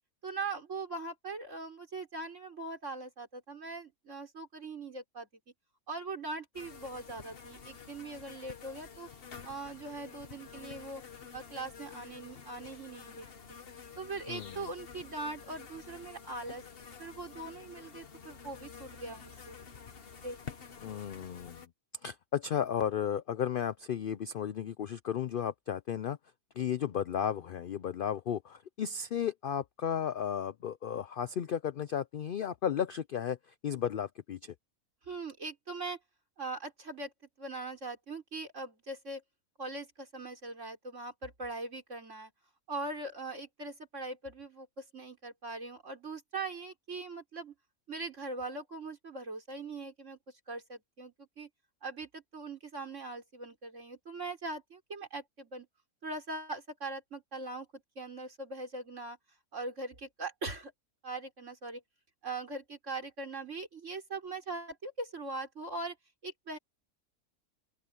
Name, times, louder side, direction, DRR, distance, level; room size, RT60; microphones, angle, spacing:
voice 1, 0.2-5.3 5.9-9.1 9.4-11.0 11.3-13.6 14.0-19.6 20.2-20.4 35.0-36.0 36.4-37.1 37.4-39.2 39.6-42.3 42.7-47.5 47.9-50.2 50.5-51.5 51.8-55.7 56.0-59.2 59.5-60.7 61.0-61.8 62.2-66.0 66.2-66.6, right 3 dB, 55° right, 4.7 m, -41 dB
sound 1, 6.5-21.7, left 6 dB, 45° left, 1.3 m, -49 dB
voice 2, 14.3-14.7 20.8-21.7 22.0-26.2 26.6-33.4 33.6-34.5, left 8 dB, 70° left, 0.5 m, -34 dB
open air
omnidirectional pair, 1.5 m